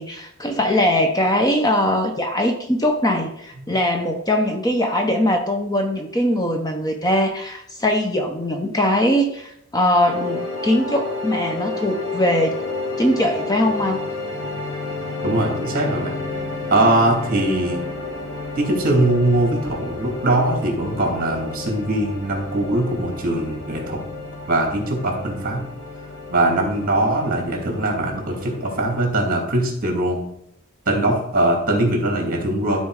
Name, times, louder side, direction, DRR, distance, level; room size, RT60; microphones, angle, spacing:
voice 1, 0.0-12.6 13.0-14.0, left 1 dB, 15° left, 4 dB, 0.6 m, -21 dB
sound 1, 10.0-29.1, left 3 dB, 85° left, 2.9 m, -31 dB
voice 2, 15.2-16.1 16.7-17.8 18.6-24.0 24.5-25.6 26.3-30.2 30.9-32.8, right 1 dB, 40° right, 1 dB, 2.5 m, -21 dB
13.0 x 4.3 x 4.8 m, 0.76 s
head